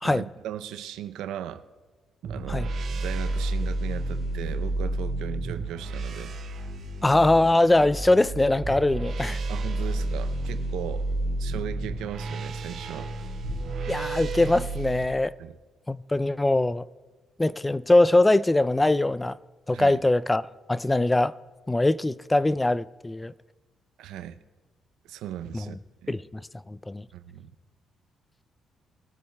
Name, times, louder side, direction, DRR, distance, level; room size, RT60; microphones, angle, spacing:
voice 1, 0.0-1.6 2.2-2.7 3.0-6.4 9.5-11.1 11.4-13.1 15.4-15.6 19.7-20.0 24.0-24.4 25.0-25.8 26.0-26.2 27.1-27.5, right 10 dB, 85° right, 0.5 m, -37 dB
sound 1, 2.2-15.0, right 2 dB, 70° right, 2.7 m, -31 dB
voice 2, 7.0-9.4 13.9-15.3 15.9-16.9 17.4-19.4 19.7-20.4 20.7-21.4 21.7-23.3 25.5-25.7 26.1-26.4 26.7-27.1, left 2 dB, 15° left, 0.3 m, -22 dB
21.5 x 12.5 x 2.2 m
supercardioid pair, 65°, 0 cm